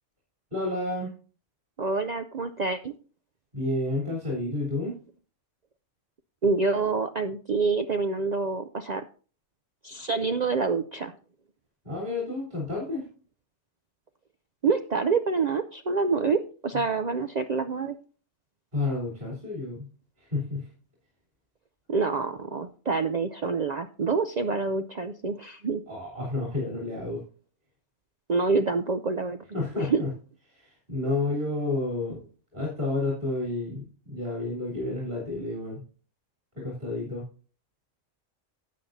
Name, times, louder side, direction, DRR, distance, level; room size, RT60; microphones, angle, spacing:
voice 1, 0.5-1.1 3.5-5.0 11.8-13.0 18.7-19.9 20.2-20.7 25.9-27.2 29.5-30.1 30.5-32.2 32.5-35.8 36.6-37.2, left 2 dB, 35° right, -3 dB, 3.7 m, -30 dB
voice 2, 1.8-2.9 6.4-9.0 9.8-11.1 14.6-18.0 21.9-25.8 28.3-29.4 29.8-30.0, right 4 dB, 70° right, 9 dB, 0.4 m, -27 dB
13.0 x 8.4 x 2.7 m, 0.38 s
omnidirectional pair, 1.5 m